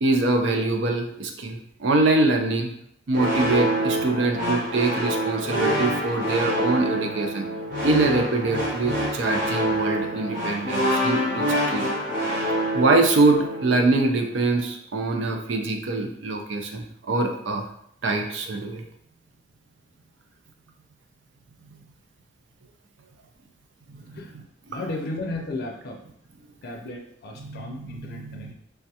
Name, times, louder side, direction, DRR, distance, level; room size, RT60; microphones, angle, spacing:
voice 1, 0.0-2.7 3.1-7.5 7.8-11.8 12.3-12.4 12.7-17.6 18.0-18.8 23.9-24.2 27.4-28.5, right 2 dB, 80° right, 3 dB, 0.5 m, -24 dB
sound 1, 3.1-14.0, equal, 50° right, 0.9 m, -26 dB
voice 2, 24.7-26.0 26.6-28.5, left 2 dB, 55° left, 1 dB, 0.4 m, -34 dB
3.3 x 2.3 x 2.8 m, 0.69 s
head